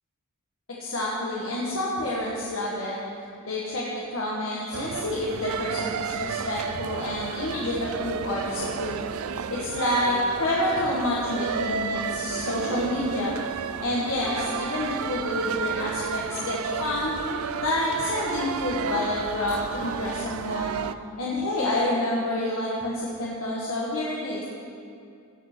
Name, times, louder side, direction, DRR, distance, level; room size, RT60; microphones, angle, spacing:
voice 1, 0.8-3.0 3.4-9.0 9.5-13.3 13.8-17.1 17.6-20.8 21.2-24.4, left 1 dB, 70° left, -5 dB, 1.7 m, -28 dB
sound 1, 4.7-20.9, right 6 dB, 85° right, 0.4 m, -32 dB
17.5 x 6.3 x 6.2 m, 2.4 s
head